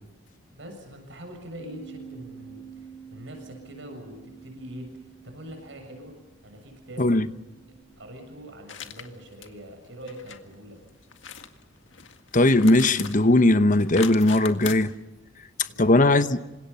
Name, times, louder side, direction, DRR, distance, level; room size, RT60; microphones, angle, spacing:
voice 1, 0.5-6.1 6.4-7.1 8.0-10.8 15.8-16.3, equal, 70° right, 7.1 m, -43 dB
Bass guitar, 1.6-7.8, right 7 dB, 15° left, 4.8 m, -48 dB
sound 1, 8.7-9.1 9.4-9.5 10.1-10.4 11.1-11.5 11.9-13.3 13.6-14.7, left 7 dB, 75° left, 1.9 m, -38 dB
voice 2, 12.3-14.9 15.8-16.4, left 2 dB, 40° left, 1.0 m, -19 dB
28.0 x 26.0 x 5.6 m
head